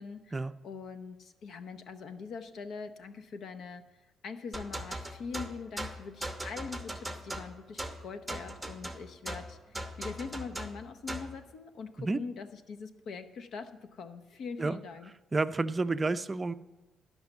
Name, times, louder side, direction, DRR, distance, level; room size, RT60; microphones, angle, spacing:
voice 1, 0.0-3.8 4.2-15.1, left 5 dB, 70° left, 9 dB, 0.7 m, -43 dB
sound 1, 4.5-11.4, right 1 dB, 5° right, 0.9 m, -39 dB
voice 2, 15.3-16.5, right 3 dB, 25° right, 13 dB, 0.4 m, -30 dB
11.5 x 5.5 x 7.0 m, 1.1 s
cardioid pair, 90°, 0 cm